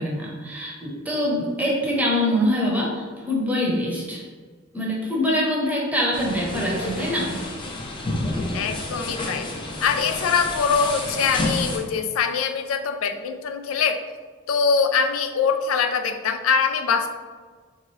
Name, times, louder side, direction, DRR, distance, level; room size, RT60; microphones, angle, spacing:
voice 1, 0.0-4.2 4.7-7.4, equal, 10° right, -4 dB, 0.7 m, -24 dB
sound 1, 6.1-11.8, left 2 dB, 25° left, 0.5 m, -29 dB
voice 2, 8.5-9.5 9.8-14.0 14.5-17.1, left 6 dB, 90° left, 8 dB, 0.4 m, -23 dB
3.7 x 2.7 x 3.1 m, 1.5 s
head